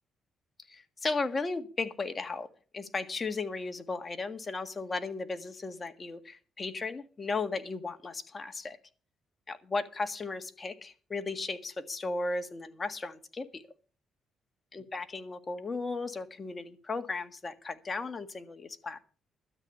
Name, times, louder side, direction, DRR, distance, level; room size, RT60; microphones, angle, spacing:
voice 1, 0.7-2.5 2.7-8.8 9.5-13.6 14.7-19.0, left 3 dB, 30° left, 8 dB, 1.7 m, -35 dB
13.0 x 8.6 x 6.7 m, 0.40 s
cardioid pair, 90°, 0 cm